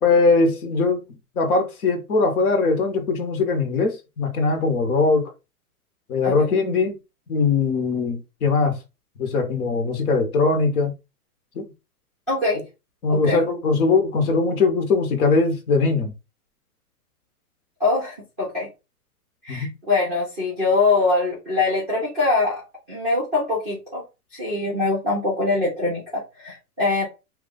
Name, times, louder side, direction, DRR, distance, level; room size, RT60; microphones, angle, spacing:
voice 1, 0.0-1.0 1.3-5.3 6.1-7.0 7.3-8.8 9.2-10.9 11.5-11.7 13.0-16.1 19.5-19.7, left 4 dB, 70° left, 1.3 m, -21 dB
voice 2, 12.3-12.6 13.1-13.4 17.8-18.7 19.4-22.6 22.9-24.0 24.3-27.1, left 3 dB, ahead, 0.4 m, -23 dB
3.0 x 2.4 x 3.8 m
hypercardioid pair, 160°, 46 cm